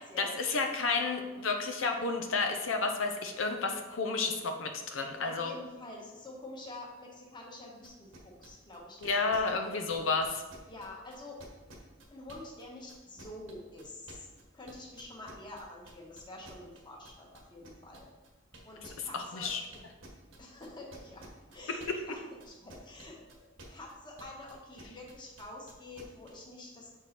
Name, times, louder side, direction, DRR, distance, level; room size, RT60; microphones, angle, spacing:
voice 1, 0.2-5.5 9.0-10.4 19.1-19.6 21.7-22.0, left 4 dB, 80° left, 4 dB, 0.6 m, -31 dB
voice 2, 5.2-9.7 10.7-11.4 12.1-14.3 14.5-18.1 18.6-19.5 20.4-21.3 21.5-27.0, left 2 dB, 25° left, -2 dB, 1.3 m, -47 dB
sound 1, 7.8-12.6 12.9-22.1 22.4-26.3, right 2 dB, 85° right, 1.4 m, -52 dB
6.7 x 4.6 x 4.4 m, 1.2 s
head